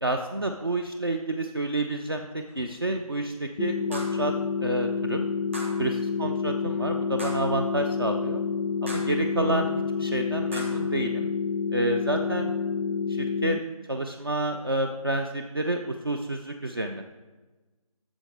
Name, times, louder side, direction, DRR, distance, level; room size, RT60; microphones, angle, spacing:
voice 1, 0.0-4.3 4.6-5.2 5.8-8.4 8.8-9.7 10.0-11.3 11.7-12.5 13.1-13.6 13.9-17.1, right 2 dB, 40° right, 4 dB, 0.4 m, -29 dB
sound 1, 2.5-2.6 3.9-4.3 5.5-5.9 7.2-7.6 8.9-9.2 10.5-10.9, equal, 20° right, 0.9 m, -39 dB
sound 2, 3.6-13.6, left 5 dB, 80° left, 0.4 m, -28 dB
11.0 x 7.1 x 3.4 m, 1.2 s
figure-of-eight pair, 175°, 19 cm